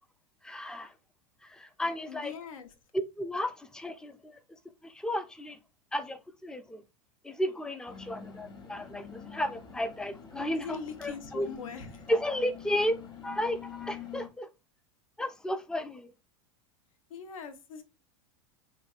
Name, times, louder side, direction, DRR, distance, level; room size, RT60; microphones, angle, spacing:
voice 1, 0.4-0.9 1.5-2.3 3.2-4.4 4.8-5.6 5.9-6.8 7.2-11.5 12.1-14.5 15.2-16.1, left 1 dB, 5° left, 0.3 m, -33 dB
voice 2, 2.1-2.7 10.5-12.1 17.1-17.8, left 6 dB, 90° left, 0.6 m, -41 dB
sound 1, 7.9-14.3, left 8 dB, 25° left, 0.8 m, -47 dB
3.0 x 2.7 x 2.4 m
hypercardioid pair, 115°, 17 cm